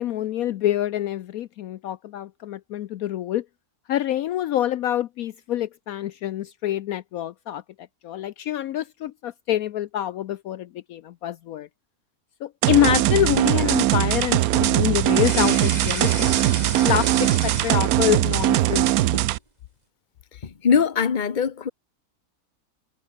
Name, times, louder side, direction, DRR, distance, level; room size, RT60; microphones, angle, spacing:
voice 1, 0.0-3.4 3.9-7.6 8.0-11.7 12.4-16.3 16.8-18.9, left 12 dB, 70° left, 1.1 m, -26 dB
sound 1, 12.6-19.4, right 15 dB, 75° right, 1.0 m, -21 dB
sound 2, 15.0-18.3 18.6-19.3, right 2 dB, 25° right, 2.3 m, -32 dB
voice 2, 20.6-21.7, left 6 dB, 35° left, 1.1 m, -21 dB
omnidirectional pair, 1.6 m